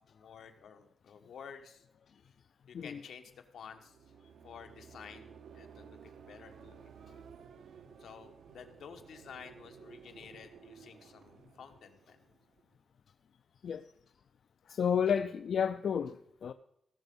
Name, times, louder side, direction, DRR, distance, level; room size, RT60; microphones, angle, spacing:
voice 1, 0.1-1.8 2.3-2.4 2.7-3.2 3.5-4.0 4.4-6.8 7.1-7.2 8.0-12.2 13.8-13.9 14.6-15.2, left 7 dB, 80° left, 1.3 m, -52 dB
sound 1, 3.7-12.8, right 7 dB, 70° right, 0.7 m, -55 dB
voice 2, 14.7-16.5, left 7 dB, 55° left, 0.4 m, -31 dB
17.0 x 6.9 x 5.4 m
wide cardioid pair, 155°, 0 cm